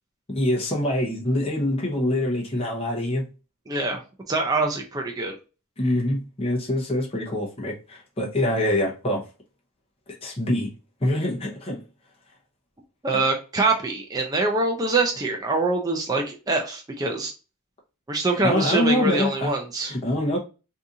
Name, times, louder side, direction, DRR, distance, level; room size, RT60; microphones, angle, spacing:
voice 1, 0.3-3.3 5.8-9.2 10.2-10.7 11.0-11.8 18.4-19.5 19.8-20.4, left 1 dB, 25° left, 0.8 m, -25 dB
voice 2, 3.7-4.0 4.3-5.4 13.0-17.3 18.1-19.9, right 3 dB, 15° right, 0.4 m, -24 dB
2.7 x 2.5 x 3.6 m
head